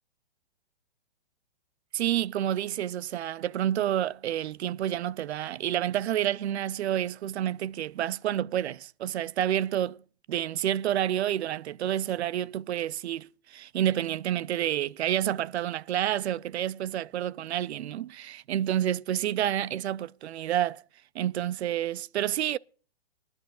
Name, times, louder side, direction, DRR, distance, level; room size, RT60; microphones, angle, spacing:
voice 1, 1.9-10.0 10.3-20.8 21.1-22.6, right 11 dB, 80° right, 0.5 m, -29 dB
23.5 x 10.5 x 2.3 m
hypercardioid pair, 175°, 32 cm